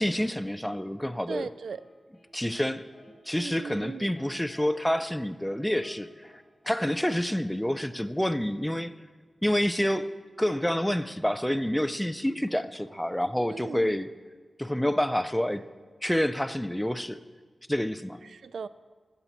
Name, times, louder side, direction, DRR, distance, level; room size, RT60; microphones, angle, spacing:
voice 1, 0.0-1.5 2.3-2.9 3.3-6.3 6.7-8.9 9.4-10.1 10.4-14.1 14.6-15.7 16.0-17.2 17.7-18.2, equal, 5° left, 13 dB, 0.3 m, -28 dB
sound 1, 1.2-2.7 2.9-3.1 3.7-3.9 4.2-4.7 5.0-5.2 5.5-6.0 6.2-6.4 6.6-6.8, left 1 dB, 20° left, 4.1 m, -55 dB
voice 2, 1.3-1.8 3.4-4.1 13.5-13.9 18.3-18.7, right 5 dB, 85° right, 15 dB, 0.3 m, -37 dB
14.5 x 8.3 x 4.2 m, 1.5 s
wide cardioid pair, 135°, 0 cm